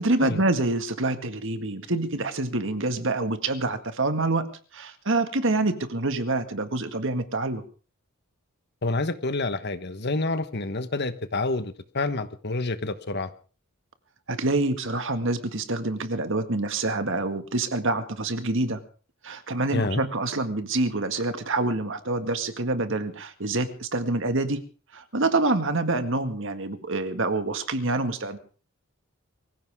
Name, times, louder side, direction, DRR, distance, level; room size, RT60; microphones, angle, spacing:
voice 1, 0.0-7.6 14.3-18.8 19.2-24.6 24.9-28.4, right 2 dB, 60° right, 8 dB, 1.9 m, -26 dB
voice 2, 8.8-13.3 19.7-20.0, left 2 dB, 50° left, 12 dB, 1.2 m, -28 dB
24.0 x 15.5 x 3.6 m, 0.39 s
head